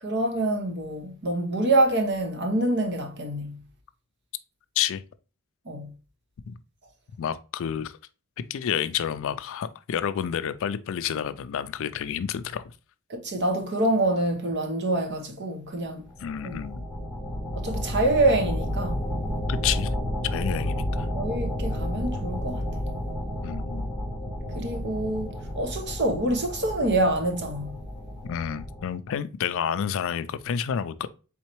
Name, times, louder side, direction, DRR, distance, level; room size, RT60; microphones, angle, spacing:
voice 1, 0.0-3.6 5.7-5.9 13.1-16.0 16.4-16.6 17.6-19.0 21.1-22.7 24.5-27.8, right 2 dB, 50° right, 0.9 m, -26 dB
voice 2, 7.2-7.9 8.5-12.7 16.2-16.9 19.5-19.9 20.2-21.1 23.4-23.9 28.3-31.1, left 8 dB, 60° left, 0.3 m, -29 dB
sound 1, 16.0-28.8, left 1 dB, 5° right, 0.9 m, -31 dB
4.2 x 3.6 x 3.0 m
head